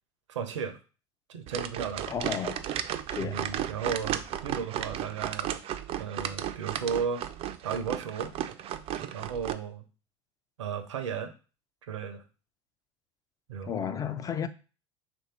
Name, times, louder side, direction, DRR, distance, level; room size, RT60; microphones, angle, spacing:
voice 1, 0.3-0.8 1.3-2.1 3.2-5.6 6.0-7.2 7.6-8.3 9.1-9.8 10.6-11.3 11.9-12.2 13.5-13.7, right 6 dB, 80° right, 0.6 m, -34 dB
sound 1, 1.5-9.5, right 11 dB, 40° right, 0.4 m, -34 dB
voice 2, 2.1-2.7 3.1-3.5 13.7-14.5, left 7 dB, 25° left, 0.4 m, -33 dB
3.2 x 2.6 x 4.2 m
hypercardioid pair, 80°, 15 cm